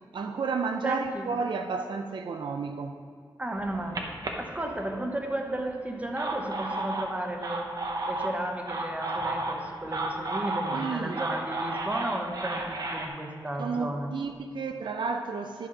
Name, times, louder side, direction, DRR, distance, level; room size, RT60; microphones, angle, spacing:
voice 1, 0.1-3.0 10.7-11.3 13.6-15.7, right 4 dB, 75° right, 6 dB, 0.5 m, -32 dB
voice 2, 0.8-1.3 3.4-7.7 8.1-14.2, right 1 dB, 15° right, 3 dB, 0.8 m, -34 dB
sound 1, 3.6-5.2 5.9-13.1, right 2 dB, 50° right, 0.9 m, -33 dB
11.0 x 5.7 x 4.8 m, 2.1 s
wide cardioid pair, 130°, 8 cm